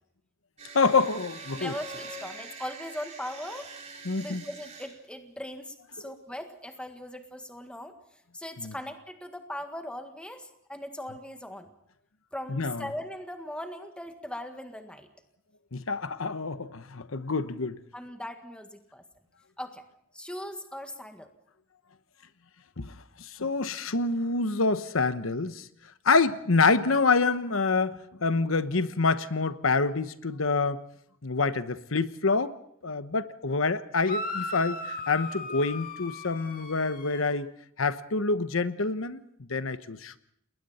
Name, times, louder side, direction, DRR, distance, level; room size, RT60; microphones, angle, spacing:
sound 1, 0.6-4.9, right 3 dB, 35° right, 4.4 m, -43 dB
voice 1, 0.7-1.7 4.0-4.4 6.1-6.2 8.6-8.7 12.5-12.9 15.7-17.8 22.8-25.7 26.0-30.8 31.2-32.5 32.8-37.5 37.8-39.2 39.5-40.2, left 4 dB, 90° left, 12 dB, 1.1 m, -27 dB
voice 2, 1.5-3.7 4.2-8.0 8.3-11.7 12.3-15.1 17.9-19.0 19.6-19.8 20.1-21.3, left 1 dB, 5° left, 6 dB, 1.7 m, -39 dB
sound 2, 34.0-37.3, left 2 dB, 45° left, 2.2 m, -37 dB
29.5 x 21.0 x 4.3 m, 0.72 s
head